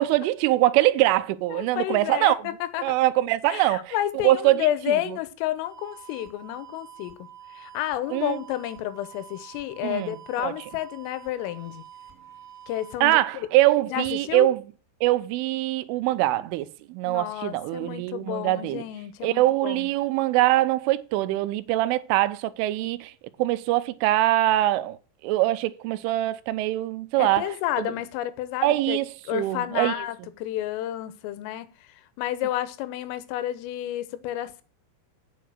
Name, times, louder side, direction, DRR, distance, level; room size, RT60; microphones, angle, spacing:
voice 1, 0.0-2.4 2.8-4.0 4.2-4.9 8.1-8.4 9.8-10.5 13.0-14.6 15.0-18.8 19.2-23.1 23.4-27.5 27.8-27.9 28.6-30.0, right 16 dB, 80° right, 3.1 m, -23 dB
voice 2, 1.5-3.0 3.5-11.8 12.7-13.5 13.9-14.5 17.1-19.9 27.2-29.0 29.3-34.6, left 13 dB, 90° left, 3.6 m, -31 dB
sound 1, 5.6-13.0, right 9 dB, 5° right, 3.0 m, -47 dB
9.1 x 6.6 x 6.1 m
omnidirectional pair, 5.8 m